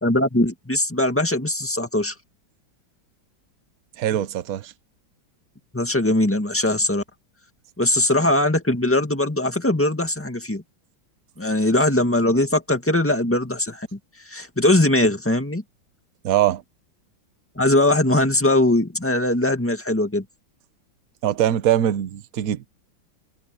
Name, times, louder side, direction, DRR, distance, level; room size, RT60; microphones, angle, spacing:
voice 1, 0.0-2.1 5.7-7.0 7.8-10.6 11.4-14.0 14.3-15.6 17.6-20.2, left 1 dB, 5° left, 1.8 m, -20 dB
voice 2, 4.0-4.7 16.2-16.6 21.2-22.7, right 11 dB, 55° right, 1.1 m, -22 dB
omnidirectional pair, 2.2 m